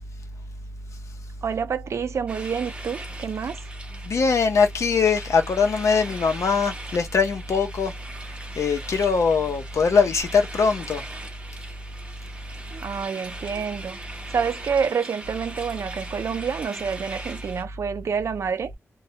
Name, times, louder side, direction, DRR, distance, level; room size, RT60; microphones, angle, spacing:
voice 1, 1.4-3.6 12.7-14.0 14.3-18.8, right 6 dB, 65° right, 0.4 m, -28 dB
sound 1, 2.3-17.6, right 2 dB, 20° right, 0.8 m, -40 dB
voice 2, 4.1-7.9 8.6-11.0, left 5 dB, 75° left, 0.7 m, -21 dB
2.3 x 2.1 x 2.8 m
wide cardioid pair, 110°, 5 cm